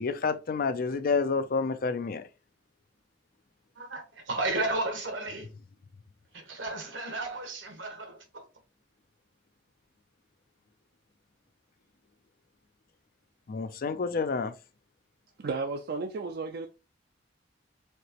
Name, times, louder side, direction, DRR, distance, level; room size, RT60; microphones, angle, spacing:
voice 1, 0.0-2.2 13.5-14.5, left 4 dB, 50° left, 0.5 m, -29 dB
voice 2, 3.8-5.5 6.3-8.4, right 2 dB, 80° right, 1.2 m, -33 dB
voice 3, 15.4-16.7, right 4 dB, 55° right, 0.4 m, -33 dB
4.5 x 2.9 x 2.9 m
head